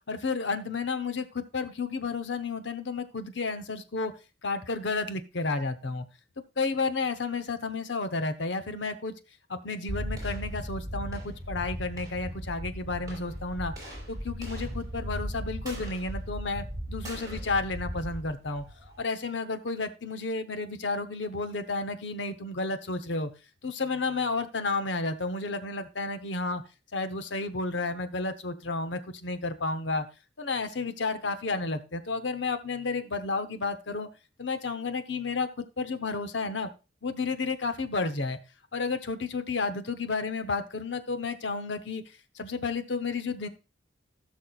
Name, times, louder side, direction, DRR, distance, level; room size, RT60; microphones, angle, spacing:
voice 1, 0.1-4.1 4.4-6.0 6.6-9.1 9.5-13.7 14.1-18.6 19.0-23.3 23.6-26.6 26.9-30.1 30.4-34.1 34.4-36.7 37.0-38.4 38.7-42.0 42.3-43.5, left 3 dB, 70° left, 10 dB, 0.9 m, -31 dB
sound 1, 9.9-19.0, equal, 20° right, 5.2 m, -37 dB
16.5 x 6.3 x 2.4 m, 0.30 s
head